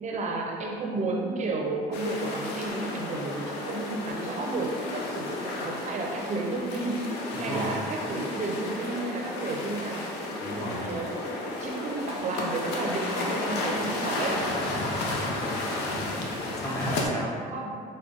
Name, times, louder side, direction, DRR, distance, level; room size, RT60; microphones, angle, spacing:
voice 1, 0.0-10.0 10.6-11.1 11.6-14.5 17.5-17.8, right 2 dB, 45° right, 0 dB, 0.6 m, -32 dB
sound 1, 1.9-17.1, left 2 dB, 85° left, 0.6 m, -32 dB
voice 2, 7.3-7.8 10.4-10.9 15.3-15.7 16.6-17.4, equal, 20° left, -3 dB, 0.6 m, -34 dB
5.0 x 2.2 x 3.8 m, 2.3 s
cardioid pair, 110°, 17 cm